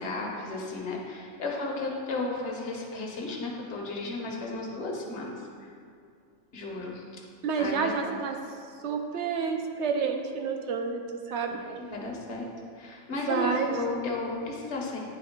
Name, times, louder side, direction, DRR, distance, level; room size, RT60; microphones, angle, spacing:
voice 1, 0.0-5.3 5.6-5.7 6.5-7.0 7.6-8.1 11.5-12.5 12.8-15.0, left 3 dB, 60° left, -1 dB, 1.2 m, -34 dB
voice 2, 7.4-8.4 8.8-11.6 13.3-13.8, right 5 dB, 65° right, 4 dB, 0.8 m, -29 dB
9.2 x 3.3 x 3.6 m, 2.3 s
omnidirectional pair, 1.4 m